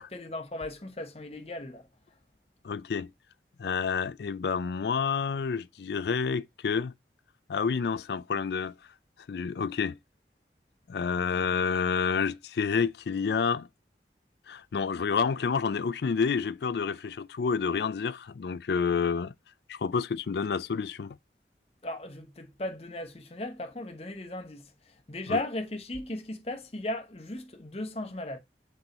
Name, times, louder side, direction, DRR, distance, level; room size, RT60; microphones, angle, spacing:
voice 1, 0.0-1.9 21.8-24.7 25.1-28.4, left 1 dB, 35° left, 0.9 m, -36 dB
voice 2, 2.6-3.1 3.6-6.9 7.5-8.7 9.3-10.0 10.9-13.7 14.5-19.3 19.7-21.2 25.3-25.4, left 5 dB, 70° left, 0.4 m, -29 dB
6.2 x 4.2 x 3.8 m
head